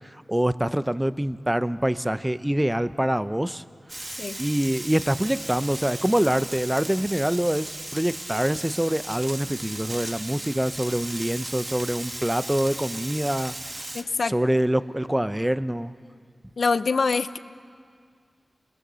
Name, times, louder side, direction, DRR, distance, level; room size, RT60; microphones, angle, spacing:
voice 1, 0.3-3.6 4.4-13.5 14.2-15.9, right 1 dB, 10° right, 13 dB, 0.7 m, -25 dB
Frying (food), 3.9-14.0, right 1 dB, 30° right, 1.8 m, -36 dB
voice 2, 13.9-14.3 16.6-17.4, left 4 dB, 70° left, 12 dB, 0.7 m, -24 dB
27.5 x 21.0 x 6.9 m, 2.1 s
wide cardioid pair, 90°, 0 cm